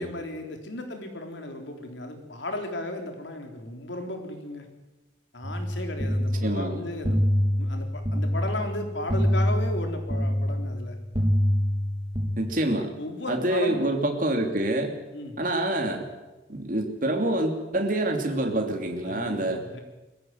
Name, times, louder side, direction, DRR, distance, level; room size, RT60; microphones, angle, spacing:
voice 1, 0.0-4.7 5.3-7.2 7.6-11.0 13.0-13.8 15.1-15.4 19.0-19.8, left 1 dB, 85° left, 4 dB, 3.8 m, -35 dB
sound 1, 5.4-12.3, equal, 30° right, 3.0 m, -26 dB
voice 2, 6.4-6.9 12.4-12.9 13.3-14.9 15.4-16.1 16.5-19.6, right 1 dB, 45° right, 3 dB, 3.0 m, -26 dB
22.0 x 15.0 x 9.4 m, 1.1 s
head